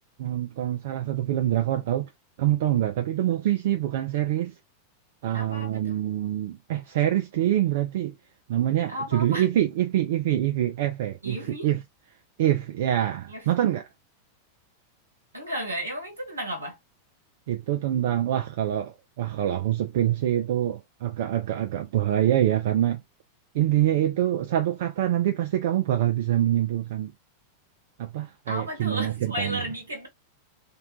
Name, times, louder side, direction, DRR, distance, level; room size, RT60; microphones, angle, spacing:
voice 1, 0.2-2.1 2.4-4.6 5.2-8.1 8.5-11.8 12.4-13.9 17.5-23.0 23.5-27.1 28.0-29.6, right 12 dB, 55° right, 0.3 m, -25 dB
voice 2, 5.3-5.9 8.9-9.5 11.2-11.7 13.3-13.5 15.3-16.8 28.5-30.1, equal, 80° right, 1.1 m, -33 dB
2.6 x 2.1 x 2.8 m
figure-of-eight pair, 90°, 0 cm